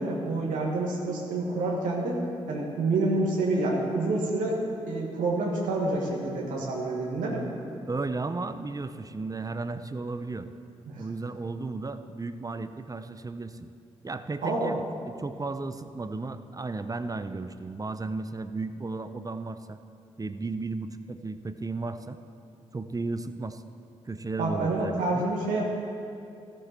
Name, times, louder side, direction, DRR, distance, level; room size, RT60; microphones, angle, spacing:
voice 1, 0.0-2.2 2.5-4.6 4.8-7.4 10.9-11.0 14.4-14.7 24.4-25.7, right 2 dB, 80° right, -3 dB, 1.5 m, -28 dB
voice 2, 7.9-10.5 11.0-13.7 14.0-14.8 15.1-19.8 20.2-22.2 22.7-23.6 24.1-25.3, right 3 dB, 25° right, 10 dB, 0.6 m, -34 dB
14.0 x 7.5 x 4.4 m, 2.5 s
hypercardioid pair, 40°, 13 cm